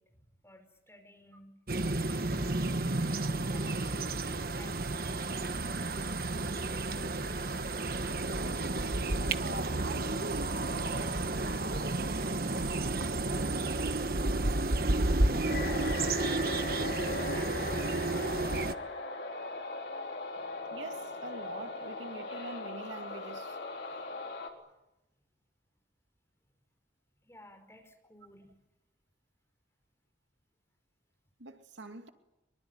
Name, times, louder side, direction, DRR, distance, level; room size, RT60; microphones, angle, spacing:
voice 1, 0.0-1.6 2.1-2.8 3.5-4.3 4.6-5.4 15.6-15.7 16.6-17.6 27.2-28.5, left 1 dB, 15° left, 5.0 m, -56 dB
sound 1, 1.7-18.7, right 2 dB, 50° right, 1.2 m, -31 dB
voice 2, 8.0-12.6 20.7-23.6 31.4-32.1, right 2 dB, 85° right, 2.5 m, -45 dB
sound 2, 15.5-24.5, left 3 dB, 70° left, 4.1 m, -39 dB
24.0 x 24.0 x 9.7 m
head